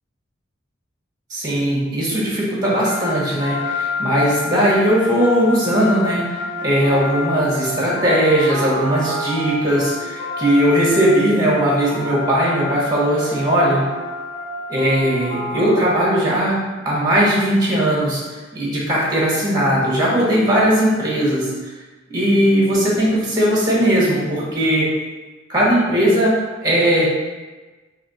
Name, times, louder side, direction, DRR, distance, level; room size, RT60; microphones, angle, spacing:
voice 1, 1.3-6.2 6.6-13.8 14.7-18.2 18.5-21.5 22.1-24.9 25.5-27.1, equal, 20° right, -6 dB, 1.3 m, -18 dB
sound 1, 2.9-16.7, left 2 dB, 35° left, 1.5 m, -28 dB
4.2 x 3.0 x 4.2 m, 1.2 s
head